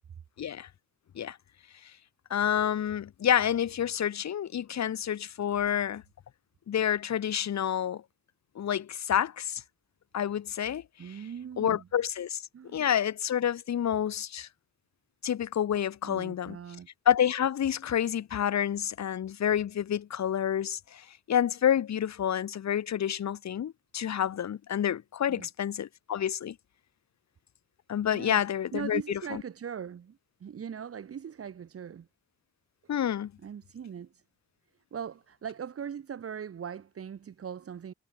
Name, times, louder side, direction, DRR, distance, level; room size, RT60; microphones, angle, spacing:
voice 1, 0.4-0.7 1.1-1.4 2.3-6.0 6.7-8.0 8.5-9.6 10.1-10.8 11.6-12.4 12.7-14.5 15.2-16.6 17.1-26.6 27.9-29.4 32.9-33.3, left 9 dB, 65° left, 1.2 m, -28 dB
voice 2, 11.0-11.9 12.5-12.9 16.0-16.9 25.3-25.5 28.1-28.4 28.7-32.1 33.4-34.2 34.9-37.9, right 8 dB, 50° right, 1.1 m, -40 dB
cardioid pair, 90°, 29 cm